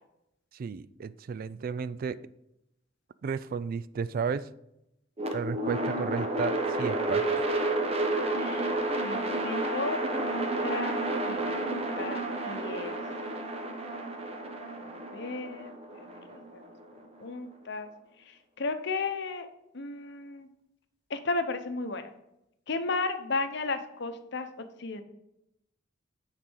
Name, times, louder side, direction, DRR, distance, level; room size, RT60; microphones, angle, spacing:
voice 1, 0.5-2.2 3.2-4.5 5.3-7.3, right 6 dB, 45° right, 17 dB, 0.3 m, -33 dB
sound 1, 5.2-17.3, right 2 dB, 30° right, 1.0 m, -31 dB
voice 2, 8.3-8.7 9.0-10.1 10.3-13.0 14.8-16.6 17.2-17.9 18.3-19.5 19.7-20.5 21.1-22.1 22.7-24.5 24.8-25.0, left 3 dB, 60° left, 8 dB, 0.8 m, -34 dB
9.7 x 4.1 x 6.2 m, 0.85 s
head